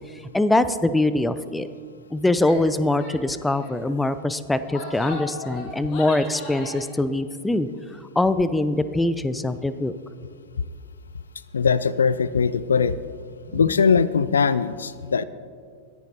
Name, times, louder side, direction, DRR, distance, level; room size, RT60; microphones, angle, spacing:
voice 1, 0.3-1.7 2.1-7.7 8.2-9.9 13.5-13.6, left 2 dB, 5° left, 14 dB, 0.5 m, -23 dB
Female speech woman speaking / Yell, 2.4-2.7 3.0-3.2 3.4-3.8 4.5-6.9, left 2 dB, 40° left, 2.6 m, -37 dB
voice 2, 11.5-13.0 13.5-15.2, left 6 dB, 70° left, 17 dB, 0.3 m, -20 dB
22.5 x 11.0 x 2.8 m, 2.1 s
figure-of-eight pair, 90°, 0 cm